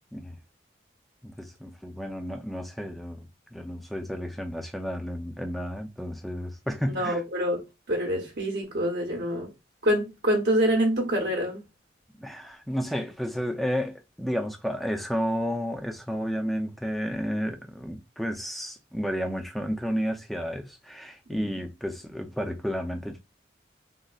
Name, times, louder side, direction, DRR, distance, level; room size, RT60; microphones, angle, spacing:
voice 1, 1.2-7.2 12.1-23.2, equal, ahead, 0.4 m, -32 dB
voice 2, 6.9-9.5 9.8-11.6 21.3-21.6, equal, 60° right, 0.8 m, -26 dB
3.7 x 2.1 x 2.3 m
head